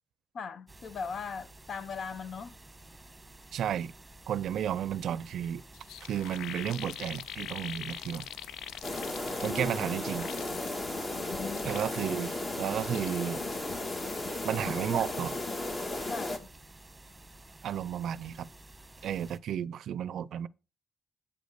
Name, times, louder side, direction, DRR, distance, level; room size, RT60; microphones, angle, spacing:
voice 1, 0.3-2.6 11.1-11.8 16.1-16.5, left 5 dB, 55° left, 0.7 m, -39 dB
sound 1, 0.7-19.4, right 2 dB, 10° right, 1.3 m, -53 dB
voice 2, 3.5-3.9 4.3-5.6 6.0-8.3 9.4-10.3 11.6-13.4 14.4-15.4 17.6-18.5 19.0-20.5, right 9 dB, 70° right, 0.5 m, -33 dB
sound 2, 5.4-5.5 5.7-9.8 10.1-10.9 11.4-12.3 12.7-15.7 16.0-16.3, left 11 dB, 85° left, 0.4 m, -45 dB
sound 3, 8.8-16.4, left 2 dB, 30° left, 1.8 m, -35 dB
8.5 x 5.2 x 6.6 m
cardioid pair, 90°, 0 cm